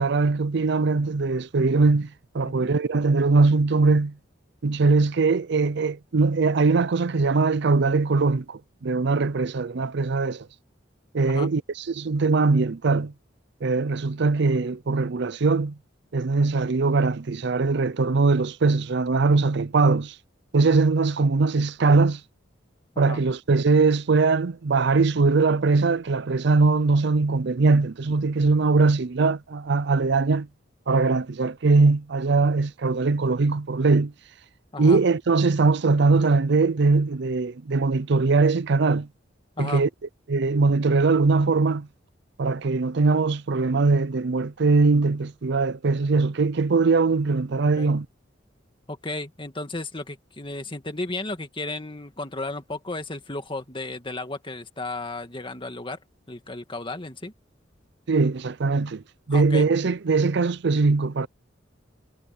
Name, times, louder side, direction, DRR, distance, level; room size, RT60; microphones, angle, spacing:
voice 1, 0.0-2.1 2.3-4.1 4.6-10.5 11.1-13.1 13.6-15.8 16.1-20.2 20.5-22.2 23.0-30.5 30.9-34.1 34.8-39.1 39.6-39.9 40.3-41.9 42.4-48.1 58.1-59.0 59.3-61.3, right 3 dB, 65° right, 0.6 m, -21 dB
voice 2, 48.9-56.0 56.3-57.3 59.3-59.7, left 2 dB, 25° left, 2.2 m, -34 dB
head